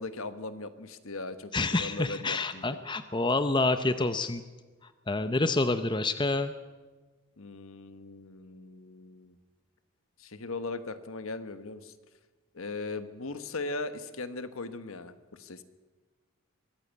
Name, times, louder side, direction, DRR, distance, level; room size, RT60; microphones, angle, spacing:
voice 1, 0.0-2.8 7.4-9.3 10.2-11.9 12.5-15.6, left 3 dB, 65° left, 11 dB, 1.3 m, -39 dB
voice 2, 1.5-4.4 5.1-6.5, left 2 dB, 20° left, 10 dB, 0.7 m, -28 dB
23.0 x 14.5 x 8.2 m, 1.3 s
head